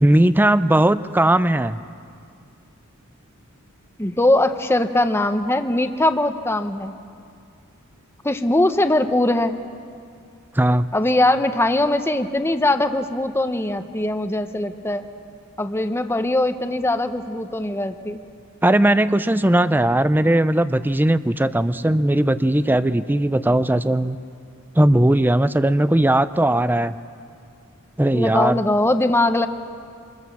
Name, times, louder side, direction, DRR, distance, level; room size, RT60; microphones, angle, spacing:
voice 1, 0.0-1.8 10.5-10.9 18.6-24.2 24.7-27.0 28.0-28.6, right 1 dB, 10° right, 14 dB, 0.5 m, -18 dB
voice 2, 4.0-6.9 8.2-9.6 10.9-15.0 15.6-18.2 28.1-29.5, left 1 dB, 10° left, 8 dB, 0.9 m, -21 dB
26.5 x 21.5 x 7.1 m, 2.3 s
head